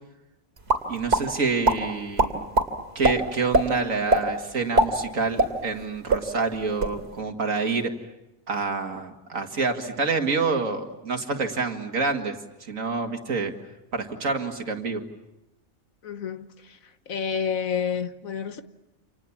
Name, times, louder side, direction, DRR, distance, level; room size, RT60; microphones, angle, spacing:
sound 1, 0.7-1.2 1.6-1.8 2.2-2.7 3.0-3.1 3.5-3.6 4.1-4.2 4.6-5.8 6.1-6.2 6.6-6.9, right 2 dB, 50° right, 3.2 m, -20 dB
voice 1, 0.9-2.5 3.0-7.9 8.5-12.3 12.7-13.5 13.9-15.0, right 4 dB, 75° right, 2.4 m, -27 dB
voice 2, 16.0-16.8 17.1-18.6, left 7 dB, 80° left, 1.7 m, -29 dB
29.5 x 27.5 x 7.3 m
omnidirectional pair, 1.4 m